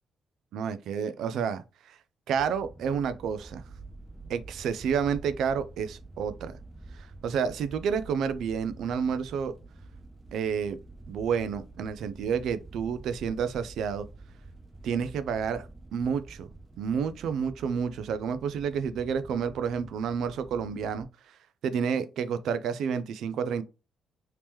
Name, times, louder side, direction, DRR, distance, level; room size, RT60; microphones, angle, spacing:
voice 1, 0.5-2.0 2.3-3.6 4.3-6.5 7.0-9.5 10.3-10.8 11.1-14.1 14.8-16.5 16.8-21.1 21.6-23.6, right 7 dB, 75° right, 0.4 m, -30 dB
sound 1, 2.3-21.0, right 2 dB, 15° right, 0.8 m, -48 dB
3.0 x 2.9 x 3.5 m
cardioid pair, 90°, 0 cm